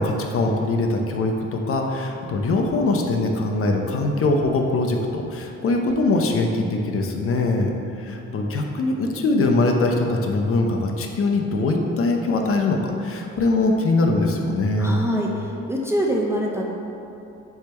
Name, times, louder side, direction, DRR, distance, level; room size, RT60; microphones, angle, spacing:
voice 1, 0.0-7.7 8.0-15.0, left 2 dB, 50° left, 2 dB, 0.5 m, -22 dB
voice 2, 14.8-16.7, equal, 10° right, -2 dB, 0.3 m, -24 dB
3.5 x 3.2 x 4.3 m, 2.8 s
cardioid pair, 90°, 30 cm